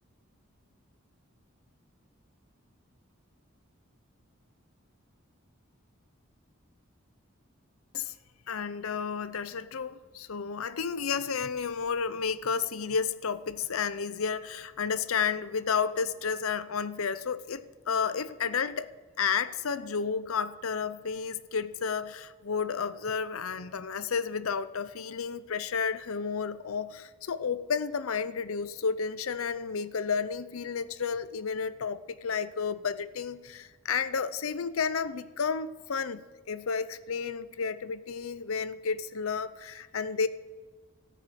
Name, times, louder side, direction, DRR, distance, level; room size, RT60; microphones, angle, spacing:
voice 1, 8.5-18.9 19.2-36.2 36.5-40.3, left 6 dB, 85° left, 0.6 m, -31 dB
14.0 x 9.2 x 7.6 m
head